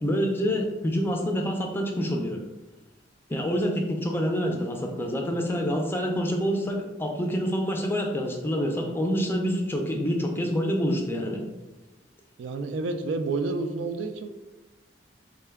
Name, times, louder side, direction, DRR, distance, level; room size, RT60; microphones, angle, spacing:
voice 1, 0.0-2.4 3.3-11.4, equal, 10° left, 1 dB, 0.4 m, -27 dB
voice 2, 12.4-14.3, right 3 dB, 80° right, 8 dB, 0.3 m, -29 dB
3.7 x 2.2 x 3.4 m, 1.1 s
head